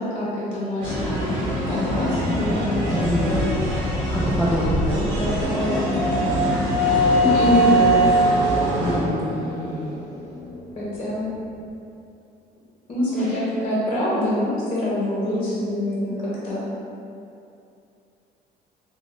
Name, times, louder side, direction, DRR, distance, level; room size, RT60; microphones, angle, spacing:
voice 1, 0.0-1.3 1.7-3.6 5.2-6.5 7.2-8.1 8.8-8.9 10.7-11.2 12.9-16.1 16.4-16.6, left 1 dB, 35° left, -8 dB, 1.0 m, -25 dB
sound 1, 0.8-9.0, equal, 80° right, 1.0 m, -25 dB
voice 2, 2.9-3.4 4.1-5.5 6.8-7.1 8.8-9.8 13.1-13.4, equal, ahead, -8 dB, 0.4 m, -27 dB
sound 2, 5.0-10.7, right 1 dB, 80° left, 0.9 m, -22 dB
3.5 x 2.3 x 2.5 m, 2.6 s
cardioid pair, 110°, 17 cm